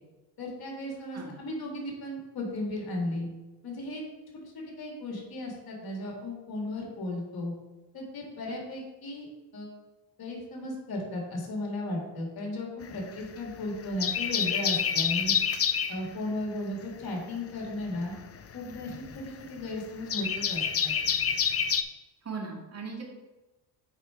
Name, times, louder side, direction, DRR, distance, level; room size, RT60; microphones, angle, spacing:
voice 1, 0.4-3.3 3.6-4.0 4.4-7.5 7.9-9.7 10.2-15.3 15.9-18.1 18.5-20.9, left 1 dB, 50° left, -1 dB, 2.6 m, -35 dB
sound 1, 12.8-13.5 13.8-16.0 17.6-21.8, left 7 dB, 30° left, 0.6 m, -28 dB
voice 2, 22.2-23.0, right 4 dB, 35° right, -1 dB, 2.2 m, -38 dB
7.9 x 4.8 x 4.6 m, 1.1 s
cardioid pair, 80°, 46 cm